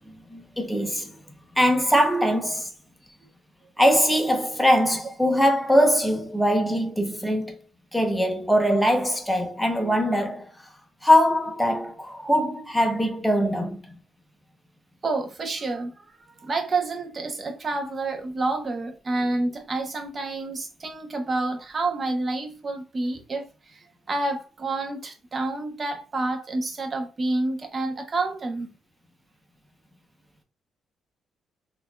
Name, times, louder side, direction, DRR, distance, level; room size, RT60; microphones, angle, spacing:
voice 1, 0.0-1.2 1.6-2.7 3.8-7.6 7.9-10.5 11.0-14.0, equal, ahead, 0.8 m, -22 dB
voice 2, 15.0-16.0 16.4-23.8 24.1-28.7, right 2 dB, 35° right, 0.9 m, -28 dB
4.1 x 2.6 x 2.3 m
cardioid pair, 90°, 0 cm